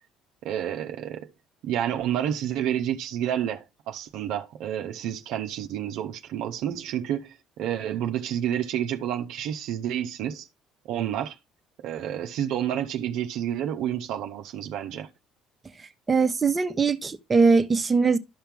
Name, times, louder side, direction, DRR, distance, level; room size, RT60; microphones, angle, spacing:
voice 1, 0.4-1.3 1.6-10.5 10.8-11.4 11.8-15.1, right 10 dB, 70° right, 0.7 m, -29 dB
voice 2, 16.1-18.2, right 4 dB, 25° right, 1.0 m, -21 dB
12.0 x 5.7 x 3.5 m
hypercardioid pair, 60°, 0 cm